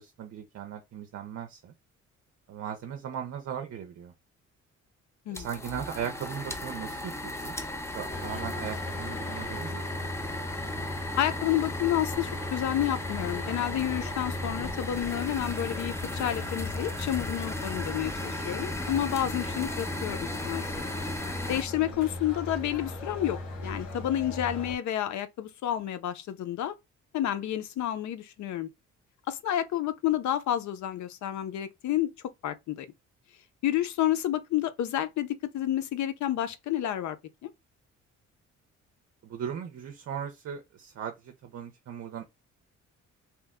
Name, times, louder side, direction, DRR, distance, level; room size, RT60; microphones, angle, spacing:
voice 1, 0.0-1.7 2.5-4.1 5.3-10.1 39.2-42.2, right 8 dB, 55° right, 0.6 m, -38 dB
sound 1, 5.3-21.6, left 1 dB, 10° left, 0.6 m, -36 dB
sound 2, 8.1-24.8, left 2 dB, 90° left, 1.2 m, -38 dB
voice 2, 11.2-20.7 21.5-26.7 27.1-28.7 29.3-32.1 32.4-32.9 33.6-35.3 35.5-37.2, left 12 dB, 70° left, 0.6 m, -30 dB
2.9 x 2.1 x 3.5 m
cardioid pair, 90°, 30 cm